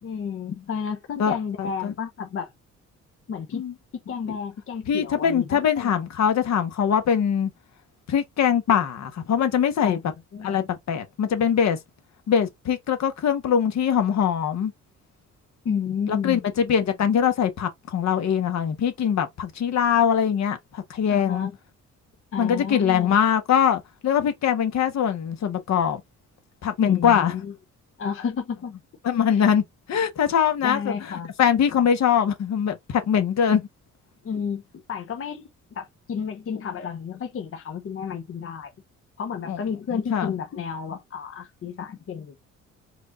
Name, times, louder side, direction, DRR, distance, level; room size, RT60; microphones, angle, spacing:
voice 1, 0.0-2.5 3.3-3.6 3.9-6.0 9.8-10.0 10.3-10.6 15.6-16.5 21.1-21.5 22.3-23.1 26.8-27.5 28.0-28.7 29.3-29.5 30.6-31.3 34.2-38.7 39.2-42.4, left 7 dB, 45° left, 0.8 m, -31 dB
voice 2, 1.2-1.9 3.5-3.7 4.9-7.5 8.1-10.0 10.4-11.8 12.3-14.7 16.1-21.5 22.4-26.0 26.6-27.3 29.0-29.6 29.9-30.9 31.4-33.7 39.5-39.6 39.9-40.3, left 8 dB, 60° left, 1.3 m, -22 dB
4.9 x 2.5 x 3.9 m
cardioid pair, 90°, 30 cm